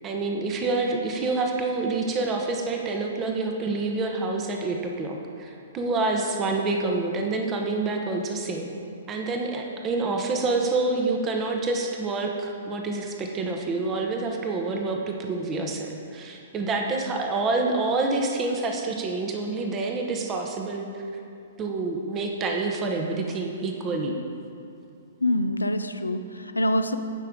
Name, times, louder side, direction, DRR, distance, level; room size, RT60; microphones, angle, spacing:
voice 1, 0.0-8.7 9.1-21.0 21.6-24.1, right 3 dB, 25° right, 2 dB, 1.0 m, -27 dB
voice 2, 25.2-27.0, left 1 dB, 85° left, 9 dB, 0.6 m, -25 dB
16.0 x 5.8 x 3.8 m, 2.7 s
figure-of-eight pair, 115°, 0 cm